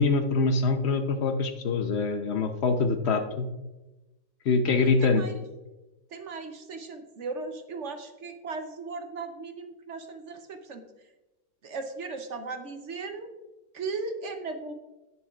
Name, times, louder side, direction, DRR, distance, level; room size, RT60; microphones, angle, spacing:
voice 1, 0.0-3.5 4.4-5.2, left 4 dB, 60° left, 7 dB, 0.7 m, -24 dB
voice 2, 5.0-5.4 6.1-11.1 11.6-13.3 13.7-14.7, right 3 dB, 55° right, 7 dB, 0.8 m, -37 dB
17.5 x 6.9 x 2.4 m, 1.1 s
omnidirectional pair, 1.9 m